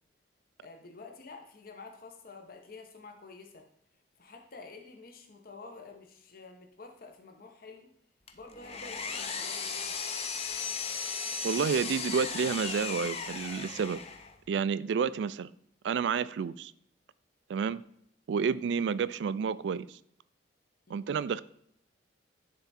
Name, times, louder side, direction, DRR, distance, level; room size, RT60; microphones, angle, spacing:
voice 1, 0.6-3.7 4.2-7.9 8.3-10.0 20.9-21.1, left 3 dB, 50° left, 3 dB, 1.0 m, -49 dB
Power tool, 8.3-14.3, left 5 dB, 35° left, 0.6 m, -36 dB
voice 2, 11.4-14.0 14.5-15.5 15.8-16.7 17.5-17.8 18.3-20.0 20.9-21.4, right 6 dB, 70° right, 18 dB, 0.3 m, -30 dB
10.5 x 3.5 x 4.2 m, 0.71 s
head